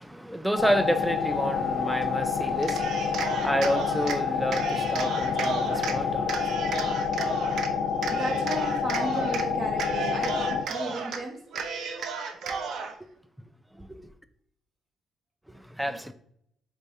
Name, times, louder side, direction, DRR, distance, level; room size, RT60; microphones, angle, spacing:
voice 1, 0.0-6.7 10.9-11.0 15.8-16.1, equal, 5° right, 0.4 m, -29 dB
sound 1, 0.6-10.6, left 6 dB, 70° left, 0.7 m, -28 dB
Cheering, 2.6-4.2 4.5-6.0 6.3-7.7 8.0-9.5 9.7-11.2 11.5-12.9, right 5 dB, 70° right, 0.6 m, -33 dB
voice 2, 8.1-11.4 15.9-16.1, right 1 dB, 35° right, 1.4 m, -34 dB
4.4 x 3.3 x 2.7 m
cardioid pair, 90°, 0 cm